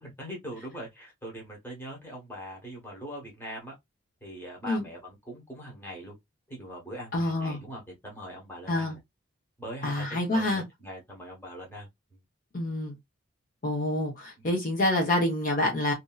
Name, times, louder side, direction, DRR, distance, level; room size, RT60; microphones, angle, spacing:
voice 1, 0.0-3.7 4.2-6.1 6.5-9.0 9.6-11.9 14.4-14.5, equal, 10° left, 1.1 m, -42 dB
voice 2, 7.1-7.6 8.7-9.0 9.8-10.6 12.5-12.9 13.6-15.9, left 1 dB, 45° left, 0.9 m, -27 dB
2.8 x 2.6 x 2.3 m
head